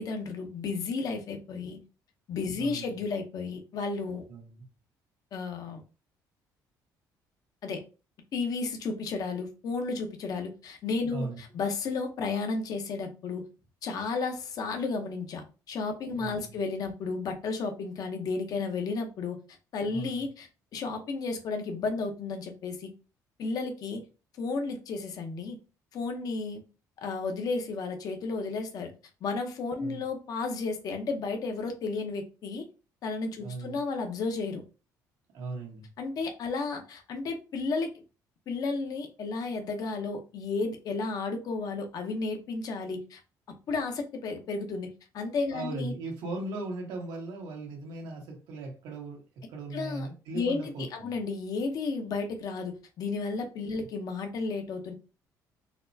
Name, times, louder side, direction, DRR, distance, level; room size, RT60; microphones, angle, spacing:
voice 1, 0.0-1.8 2.3-4.2 5.3-5.8 7.6-7.8 8.3-13.4 13.8-19.4 19.7-22.9 23.4-24.0 24.4-25.6 25.9-26.6 27.0-28.9 29.2-32.6 33.0-34.6 36.0-37.9 38.5-43.2 43.7-44.9 45.1-45.9 49.7-50.1 50.3-54.9, left 4 dB, 55° left, 5 dB, 0.7 m, -33 dB
voice 2, 2.6-3.0 4.3-4.7 11.1-11.4 16.2-16.6 19.9-20.2 29.8-30.0 33.4-33.8 35.3-35.9 45.5-49.2 49.5-51.1, right 2 dB, 85° right, 1 dB, 1.2 m, -38 dB
4.2 x 2.1 x 2.7 m, 0.33 s
cardioid pair, 115°, 7 cm